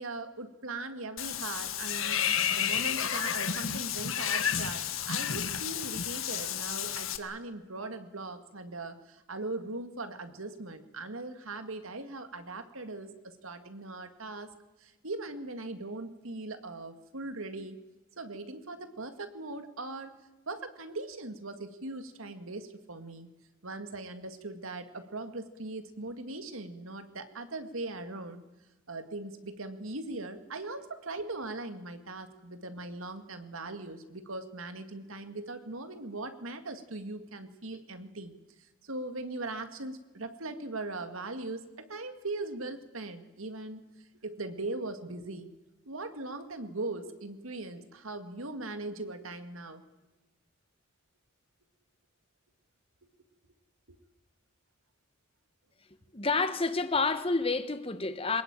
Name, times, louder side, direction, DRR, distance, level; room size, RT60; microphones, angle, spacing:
voice 1, 0.0-2.2 2.5-14.5 14.8-17.8 18.2-20.1 20.5-23.3 23.6-28.4 28.9-38.3 38.6-43.8 44.2-45.5 45.9-49.8 53.9-54.0, right 2 dB, 80° right, 2.2 m, -40 dB
Water / Bathtub (filling or washing), 1.2-7.2, left 9 dB, 80° left, 1.6 m, -31 dB
voice 2, 56.1-58.4, left 3 dB, 25° left, 1.3 m, -29 dB
22.5 x 20.5 x 9.0 m
head